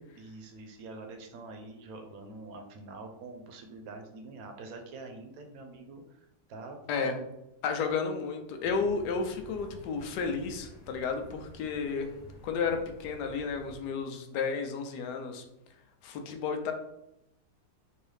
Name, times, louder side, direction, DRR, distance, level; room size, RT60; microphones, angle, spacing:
voice 1, 0.1-7.2, right 3 dB, 70° right, 4 dB, 1.0 m, -45 dB
voice 2, 7.6-12.1 12.4-15.4 16.0-16.7, left 5 dB, 80° left, 5 dB, 1.1 m, -32 dB
sound 1, 8.6-13.8, equal, 45° left, 0.5 m, -51 dB
3.8 x 2.7 x 3.2 m, 0.86 s
omnidirectional pair, 1.7 m